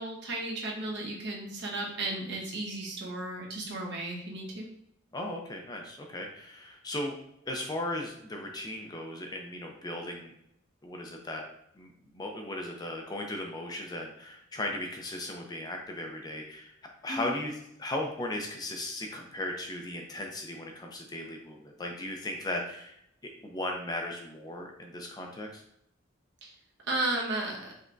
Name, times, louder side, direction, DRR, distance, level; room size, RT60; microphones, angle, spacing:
voice 1, 0.0-4.7 17.1-17.3 26.4-26.5 26.9-27.7, right 2 dB, 55° right, -2 dB, 1.1 m, -34 dB
voice 2, 5.1-7.2 7.5-10.3 10.8-11.4 11.8-16.7 17.0-22.9 23.2-25.6, left 1 dB, 20° left, 1 dB, 0.5 m, -37 dB
5.1 x 3.4 x 2.6 m, 0.74 s
head